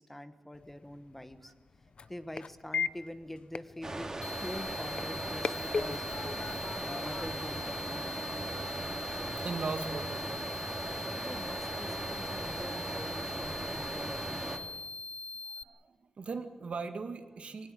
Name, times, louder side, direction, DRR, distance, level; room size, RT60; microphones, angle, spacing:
voice 1, 0.0-1.5 2.1-6.1 6.8-8.3 11.2-14.7, left 1 dB, 10° left, 10 dB, 1.3 m, -45 dB
sound 1, 0.5-8.4, left 5 dB, 55° left, 0.7 m, -40 dB
sound 2, 3.8-14.6, right 2 dB, 30° right, 2.7 m, -38 dB
sound 3, 4.2-15.6, left 4 dB, 90° left, 0.7 m, -42 dB
voice 2, 9.4-10.6 15.7-17.7, right 4 dB, 75° right, 7 dB, 2.2 m, -39 dB
21.5 x 19.0 x 8.6 m, 1.2 s
wide cardioid pair, 150°, 2 cm